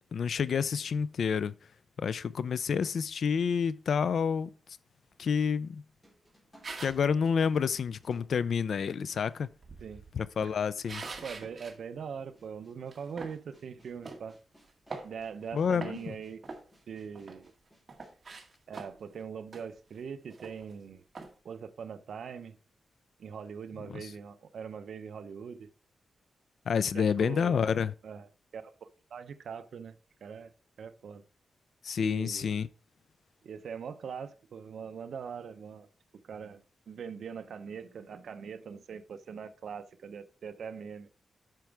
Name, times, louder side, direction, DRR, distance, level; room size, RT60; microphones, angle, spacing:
voice 1, 0.1-1.5 2.0-4.5 5.2-5.8 6.8-9.5 10.1-11.0 15.5-16.1 23.9-24.1 26.7-27.9 31.8-32.7, left 6 dB, 65° left, 0.4 m, -29 dB
sound 1, 6.0-9.2 10.1-10.2 12.4-18.5, equal, 10° left, 3.6 m, -62 dB
sound 2, 6.6-7.1 9.5-11.8 12.2-12.3 12.9-13.4 14.0-14.2 14.7-15.4 15.7-16.1 16.4-17.5 17.9-19.1 19.5-19.7 20.0-20.1 20.3-20.7 21.1-21.3, right 3 dB, 40° right, 1.8 m, -44 dB
voice 2, 11.2-14.4 15.0-16.4 16.9-17.5 18.7-21.0 21.4-22.6 23.2-25.7 26.9-27.6 28.0-28.3 28.5-29.9 30.2-30.5 30.8-31.2 32.0-32.5 33.4-35.9 36.2-41.1, right 6 dB, 70° right, 0.7 m, -42 dB
9.1 x 6.0 x 3.4 m
wide cardioid pair, 135°, 0 cm